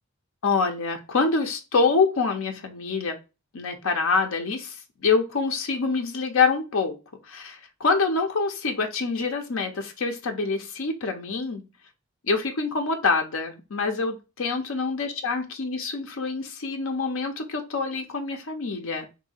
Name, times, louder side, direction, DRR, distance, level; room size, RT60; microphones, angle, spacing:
voice 1, 0.4-3.2 3.5-7.0 7.2-11.6 12.2-19.1, left 4 dB, 80° left, 4 dB, 0.6 m, -26 dB
2.7 x 2.7 x 4.1 m, 0.29 s
head